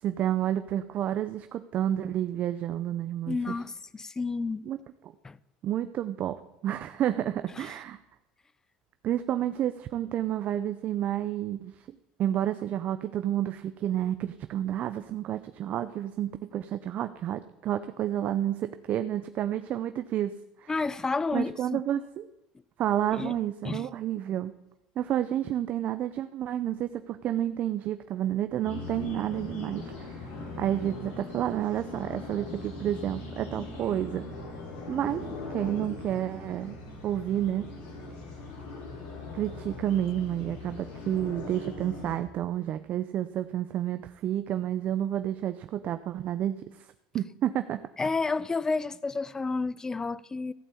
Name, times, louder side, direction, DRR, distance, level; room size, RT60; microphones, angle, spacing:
voice 1, 0.0-3.6 4.7-4.8 5.6-8.0 9.0-11.7 12.2-20.7 21.3-22.3 22.8-24.5 25.0-30.3 30.6-34.2 34.9-36.8 37.0-37.7 39.3-46.9 47.1-47.8, right 11 dB, 50° right, 0.6 m, -30 dB
voice 2, 3.3-4.6 5.2-5.4 7.6-7.7 20.7-21.8 23.1-23.4 23.6-23.9 48.0-50.5, left 3 dB, 15° left, 0.5 m, -30 dB
sound 1, 28.6-42.2, left 3 dB, 75° left, 3.8 m, -40 dB
14.5 x 5.5 x 8.3 m
supercardioid pair, 110°, 4 cm